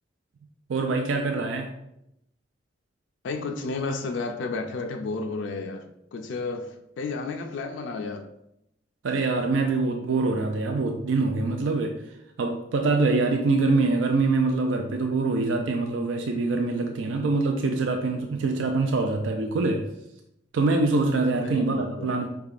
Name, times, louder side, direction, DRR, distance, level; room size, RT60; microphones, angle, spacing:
voice 1, 0.7-1.7 9.0-12.0 12.4-19.9 20.5-22.3, right 3 dB, 80° right, 3 dB, 0.4 m, -24 dB
voice 2, 3.2-5.9 6.1-8.3 21.4-22.2, left 3 dB, 70° left, 5 dB, 0.4 m, -32 dB
4.8 x 3.4 x 2.4 m, 0.82 s
head